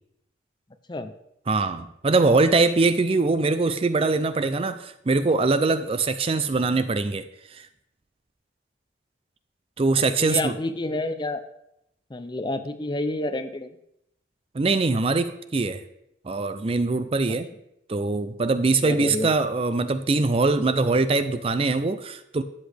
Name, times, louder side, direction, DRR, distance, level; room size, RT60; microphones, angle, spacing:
voice 1, 1.5-7.2 7.5-7.7 9.8-10.6 14.5-15.8 16.3-17.5 17.9-22.4, right 3 dB, 30° right, 12 dB, 0.4 m, -22 dB
voice 2, 10.2-11.4 12.1-13.7 18.8-19.3, left 2 dB, 25° left, 10 dB, 0.5 m, -29 dB
12.5 x 8.4 x 3.4 m, 0.80 s
head